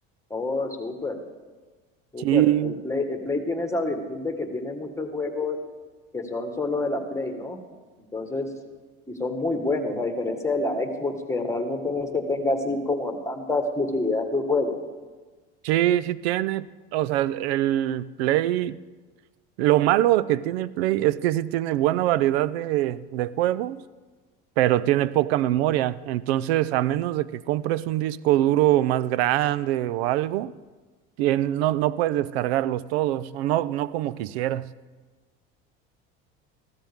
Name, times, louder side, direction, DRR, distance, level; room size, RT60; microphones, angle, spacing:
voice 1, 0.3-1.2 2.1-5.6 6.1-7.6 8.1-8.5 9.1-14.8, left 2 dB, 10° left, 5 dB, 1.7 m, -27 dB
voice 2, 2.2-2.8 15.6-16.7 16.9-18.8 19.6-23.8 24.6-30.5 31.2-34.7, right 14 dB, 90° right, 19 dB, 0.5 m, -23 dB
15.0 x 13.0 x 3.6 m, 1.3 s
supercardioid pair, 95°, 30 cm